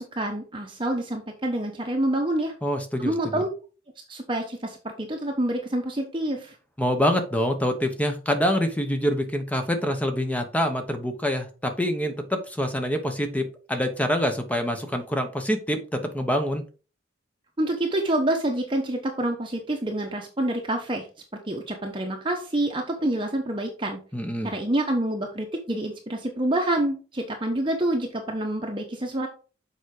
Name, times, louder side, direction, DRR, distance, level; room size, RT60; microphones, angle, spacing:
voice 1, 0.0-2.5 3.0-3.5 4.1-6.5 17.6-21.1 21.3-24.0 24.4-29.3, right 1 dB, 25° right, 2 dB, 1.0 m, -27 dB
voice 2, 2.6-3.4 6.8-16.6 24.1-24.5, equal, 10° left, 6 dB, 1.0 m, -26 dB
7.1 x 4.9 x 4.8 m, 0.36 s
head